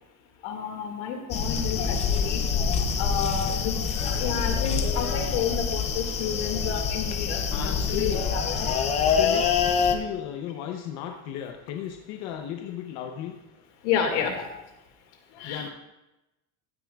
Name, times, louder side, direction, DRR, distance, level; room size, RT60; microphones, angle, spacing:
voice 1, 0.4-9.0 13.8-14.5 15.3-15.7, left 7 dB, 80° left, 3 dB, 2.1 m, -31 dB
sound 1, 1.3-10.0, left 6 dB, 20° left, 0.4 m, -26 dB
voice 2, 7.5-8.2 9.2-13.4 15.4-15.7, left 10 dB, 55° left, 4 dB, 0.7 m, -35 dB
15.0 x 9.6 x 2.3 m, 0.97 s
cardioid pair, 180°, 34 cm